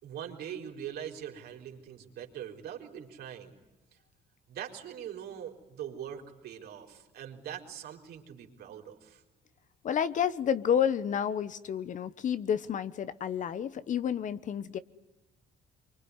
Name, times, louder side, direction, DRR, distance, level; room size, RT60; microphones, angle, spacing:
voice 1, 0.0-3.6 4.5-9.2, right 9 dB, 70° right, 3 dB, 4.3 m, -42 dB
voice 2, 9.8-14.8, left 8 dB, 50° left, 15 dB, 1.1 m, -30 dB
25.5 x 24.0 x 9.7 m, 1.1 s
cardioid pair, 110°, 17 cm